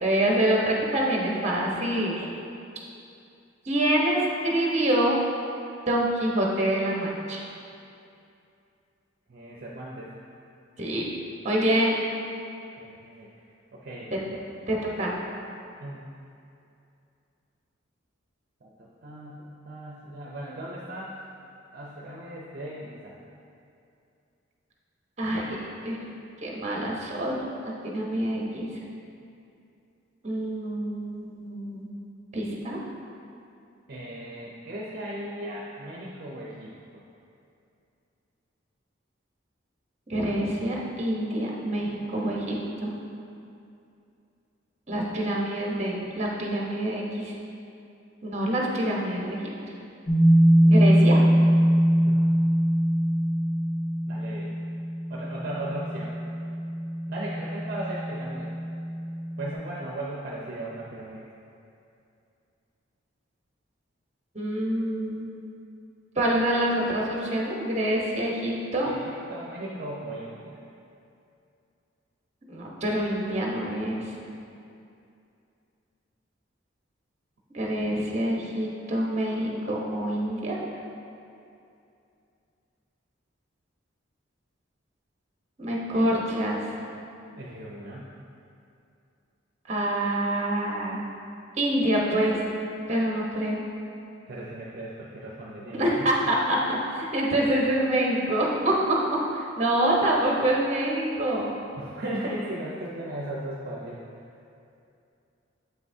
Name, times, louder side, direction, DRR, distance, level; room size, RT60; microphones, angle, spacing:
voice 1, 0.0-2.3 3.7-5.2 5.9-7.4 10.8-11.0 11.4-12.0 14.1-14.2 14.7-15.1 25.2-25.6 25.8-26.0 26.4-27.4 27.9-28.7 30.2-31.9 32.3-32.8 40.1-42.5 42.8-42.9 44.9-47.3 48.2-49.4 50.6-51.2 64.3-65.3 66.1-68.9 72.5-74.1 77.5-80.6 85.6-86.6 89.7-91.0 91.5-92.4 92.9-93.6 95.7-99.0 99.3-101.5, right 1 dB, 35° right, -3 dB, 1.0 m, -26 dB
voice 2, 9.3-10.2 12.8-13.3 13.7-14.1 15.8-16.0 18.6-21.2 21.7-23.1 33.9-37.0 52.0-52.3 54.1-54.6 55.1-56.1 57.1-58.5 59.4-61.3 68.8-70.6 87.4-88.1 94.3-96.1 101.8-104.3, right 1 dB, 50° right, -5 dB, 0.6 m, -37 dB
sound 1, 50.1-59.5, equal, 10° left, 1.0 m, -22 dB
7.8 x 5.7 x 2.7 m, 2.6 s
head